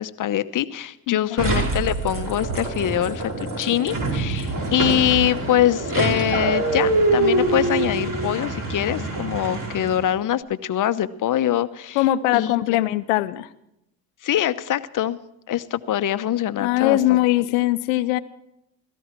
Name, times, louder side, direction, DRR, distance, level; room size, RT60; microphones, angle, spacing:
voice 1, 0.0-12.0 12.3-12.8 14.2-15.2 15.5-17.0, left 11 dB, 50° left, 12 dB, 1.0 m, -24 dB
voice 2, 1.1-1.5 11.9-13.5 16.6-18.2, left 16 dB, 85° left, 12 dB, 0.9 m, -21 dB
sound 1, 1.4-10.1, right 2 dB, 50° right, 5.0 m, -25 dB
17.0 x 14.5 x 4.5 m, 0.80 s
supercardioid pair, 75°, 41 cm